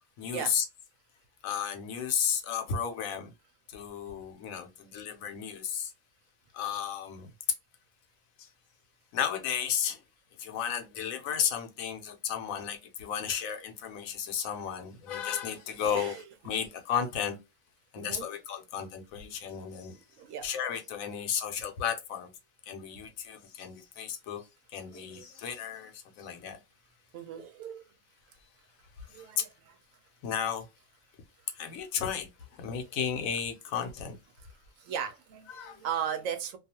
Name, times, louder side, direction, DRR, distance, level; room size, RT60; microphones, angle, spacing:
voice 1, 0.2-0.6 1.4-3.3 3.7-5.9 6.5-7.3 9.1-10.0 10.4-17.4 17.9-19.9 20.4-22.3 22.7-24.4 24.7-26.6 29.2-29.4 30.2-30.7 31.5-34.2 35.5-35.8, left 8 dB, 80° left, 1.0 m, -33 dB
voice 2, 15.9-16.2 18.0-18.3 20.2-20.4 24.9-25.4 27.1-27.9 29.1-29.5 34.4-34.5 34.8-36.6, right 8 dB, 75° right, 0.9 m, -37 dB
2.4 x 2.3 x 2.7 m
omnidirectional pair, 1.4 m